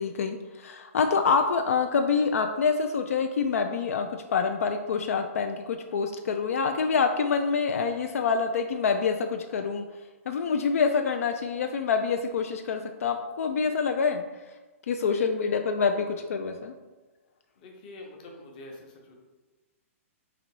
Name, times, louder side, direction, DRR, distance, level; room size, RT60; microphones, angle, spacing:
voice 1, 0.0-9.9 10.3-14.2 14.9-16.7, left 5 dB, 75° left, 6 dB, 0.3 m, -26 dB
voice 2, 15.1-15.7 16.1-16.2 17.6-19.1, left 2 dB, 35° left, 1 dB, 0.8 m, -47 dB
3.9 x 2.9 x 4.6 m, 1.2 s
hypercardioid pair, 170°, 8 cm